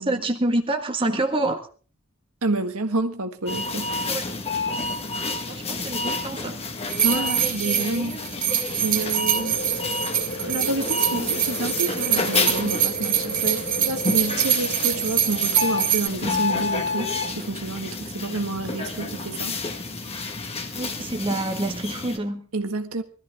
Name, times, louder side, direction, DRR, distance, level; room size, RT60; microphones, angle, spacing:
voice 1, 0.0-1.7 4.1-4.3 5.5-6.6 18.3-18.4 20.7-22.5, right 2 dB, 25° right, 1.6 m, -27 dB
voice 2, 2.4-3.9 7.0-8.2 8.8-9.5 10.4-19.5 22.5-23.0, right 2 dB, 80° right, 1.6 m, -29 dB
sound 1, 3.5-22.2, left 3 dB, 30° left, 1.5 m, -30 dB
sound 2, 6.9-16.1, right 10 dB, 40° right, 2.3 m, -24 dB
sound 3, 9.3-16.0, left 2 dB, 70° left, 2.4 m, -36 dB
21.5 x 13.5 x 3.5 m
head